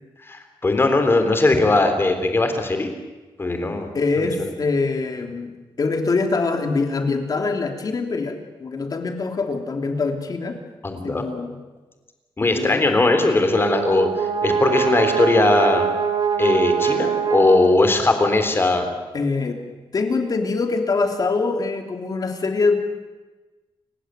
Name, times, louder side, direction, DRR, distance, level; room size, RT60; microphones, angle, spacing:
voice 1, 0.3-2.9 3.4-3.9 4.2-4.3 10.8-11.3 12.4-15.9 16.4-18.9, left 2 dB, 25° left, 7 dB, 3.5 m, -19 dB
voice 2, 3.9-5.5 5.8-10.6 11.0-11.6 12.4-12.8 19.1-19.6 19.9-22.8, left 3 dB, 45° left, 5 dB, 3.2 m, -24 dB
Brass instrument, 13.2-18.2, right 7 dB, 50° right, 2.7 m, -24 dB
29.5 x 16.5 x 9.1 m, 1.2 s
wide cardioid pair, 160°, 9 cm